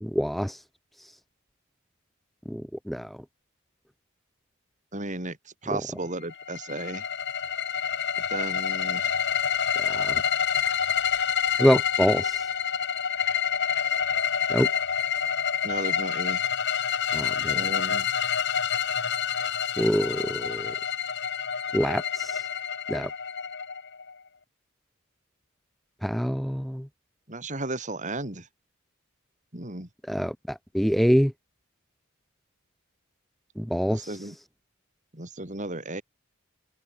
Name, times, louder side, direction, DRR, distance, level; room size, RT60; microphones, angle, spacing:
voice 1, 0.0-0.6 2.5-3.2 5.7-5.8 9.8-10.2 11.6-12.4 14.5-14.7 17.1-17.6 19.8-20.7 21.7-22.4 22.9-23.1 26.0-26.9 30.1-31.3 33.6-34.1, equal, ahead, 1.6 m, -25 dB
voice 2, 4.9-7.0 8.3-9.2 15.6-16.5 17.5-18.1 27.3-28.5 29.5-29.9 33.9-34.3 35.1-36.0, right 2 dB, 35° right, 4.4 m, -34 dB
sound 1, 6.3-24.1, left 8 dB, 55° left, 2.3 m, -28 dB
open air
head